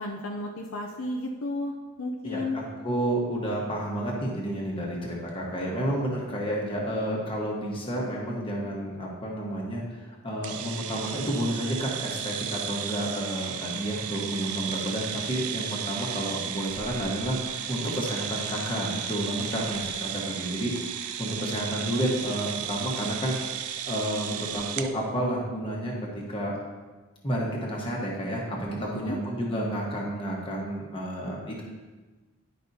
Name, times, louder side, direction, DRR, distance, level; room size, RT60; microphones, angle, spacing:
voice 1, 0.0-1.7 2.0-2.6 28.7-29.2, left 2 dB, 65° left, 0 dB, 0.6 m, -33 dB
voice 2, 2.2-23.4 23.8-26.5 27.2-31.6, right 1 dB, 25° left, -3 dB, 1.3 m, -30 dB
sound 1, 10.4-24.9, right 9 dB, 75° right, 0.4 m, -34 dB
10.5 x 5.3 x 2.7 m, 1.3 s
head